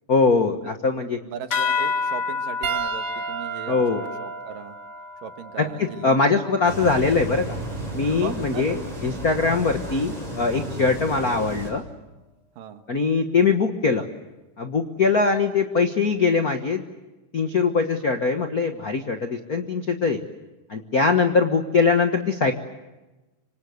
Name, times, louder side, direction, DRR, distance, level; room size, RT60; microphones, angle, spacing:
voice 1, 0.1-1.2 3.7-4.0 5.6-7.6 7.9-8.8 9.0-11.8 12.9-14.0 14.6-16.9 17.3-20.2 20.7-22.5, left 4 dB, 65° left, 6 dB, 0.9 m, -22 dB
voice 2, 1.3-4.8 5.2-6.4 8.2-9.0 12.6-12.8, right 8 dB, 85° right, 8 dB, 3.2 m, -38 dB
sound 1, 1.5-6.5, left 5 dB, 40° left, 1.8 m, -30 dB
Piano, 2.6-7.3 8.2-8.4 10.4-10.5, right 9 dB, 65° right, 3.1 m, -35 dB
sound 2, 6.6-11.7, right 1 dB, 10° right, 6.2 m, -33 dB
26.0 x 25.5 x 8.0 m, 1.1 s
omnidirectional pair, 3.8 m